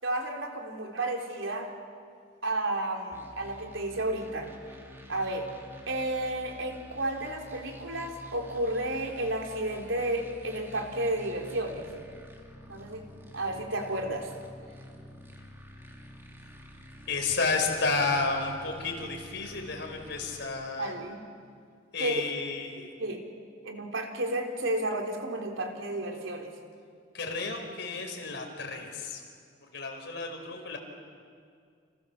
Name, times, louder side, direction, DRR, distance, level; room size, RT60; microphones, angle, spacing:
voice 1, 0.0-1.7 2.4-4.5 5.1-5.5 5.9-11.9 12.7-13.1 13.3-14.3 20.8-21.2 22.0-22.3 23.0-23.3 23.6-26.5, right 1 dB, 85° right, 2 dB, 3.8 m, -32 dB
sound 1, 3.1-20.4, left 1 dB, 15° right, 2.8 m, -49 dB
voice 2, 17.1-20.9 21.9-22.9 27.1-29.2 29.7-30.8, left 3 dB, 60° left, 3 dB, 4.9 m, -31 dB
29.0 x 28.0 x 7.3 m, 2.2 s
head